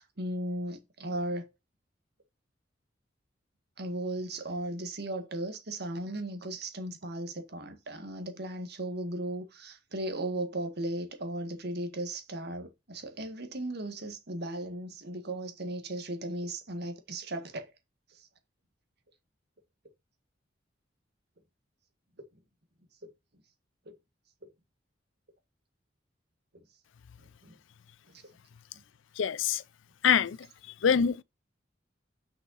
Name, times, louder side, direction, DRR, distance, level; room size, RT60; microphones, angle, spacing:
voice 1, 0.0-1.5 3.8-17.7 18.1-18.3 27.2-27.5 28.1-28.2, right 1 dB, 60° right, 1.8 m, -36 dB
voice 2, 29.2-29.6 30.0-30.4 30.8-31.2, left 7 dB, 85° left, 0.5 m, -24 dB
6.5 x 5.8 x 4.1 m
head